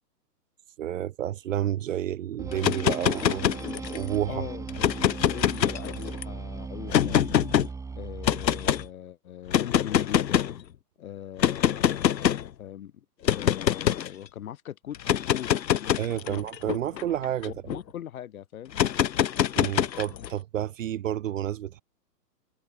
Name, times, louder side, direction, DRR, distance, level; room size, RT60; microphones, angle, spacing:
voice 1, 0.8-3.5 3.9-4.4 16.0-17.8 19.5-21.8, right 11 dB, 50° right, 0.8 m, -30 dB
sound 1, 2.4-8.9, right 4 dB, 5° right, 3.2 m, -38 dB
sound 2, 2.5-4.1 4.7-6.2 6.9-7.7 8.2-8.8 9.5-10.6 11.4-12.5 13.2-14.1 14.9-17.8 18.7-20.3, left 10 dB, 85° left, 1.2 m, -25 dB
voice 2, 4.3-4.9 5.2-7.4 7.9-10.4 11.0-13.1 13.3-16.0 16.3-16.4 17.5-18.7, left 10 dB, 55° left, 4.0 m, -40 dB
hypercardioid pair, 155°, 49 cm